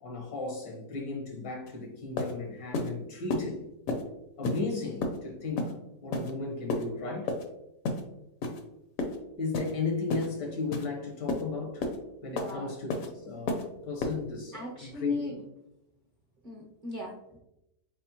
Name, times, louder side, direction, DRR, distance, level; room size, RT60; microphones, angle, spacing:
voice 1, 0.0-3.6 4.4-5.7 6.0-7.3 9.4-11.8 12.2-15.4, left 4 dB, 85° left, 0 dB, 1.8 m, -35 dB
sound 1, 1.7-1.8 2.2-2.3 2.7-2.9 3.3-3.4 3.9-4.0 4.4-4.6 5.0-5.2 5.6-5.7 6.1-6.3 6.7-6.8 7.3-7.4 7.8-8.0 8.4-8.6 9.0-9.2 9.5-9.7 10.1-10.3 10.7-10.9 11.3-11.4 11.8-12.0 12.4-12.5 12.9-13.1 13.5-13.6 14.0-14.1, left 2 dB, 65° left, 1.0 m, -31 dB
voice 2, 12.3-12.8 14.5-15.4 16.4-17.4, left 1 dB, 40° right, -4 dB, 0.8 m, -39 dB
4.3 x 4.2 x 2.9 m, 0.87 s
omnidirectional pair, 1.8 m